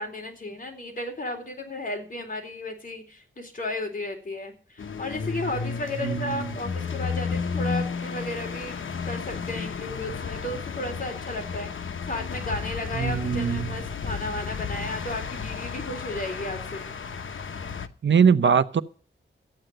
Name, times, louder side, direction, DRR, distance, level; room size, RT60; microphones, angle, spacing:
voice 1, 0.0-16.9, left 1 dB, 40° left, 3 dB, 3.8 m, -34 dB
sound 1, 4.8-17.9, left 5 dB, 75° left, 1.0 m, -33 dB
voice 2, 6.0-6.4 13.0-13.7 18.0-18.8, right 6 dB, 65° right, 12 dB, 0.7 m, -21 dB
13.5 x 9.1 x 7.7 m, 0.41 s
wide cardioid pair, 90°, 21 cm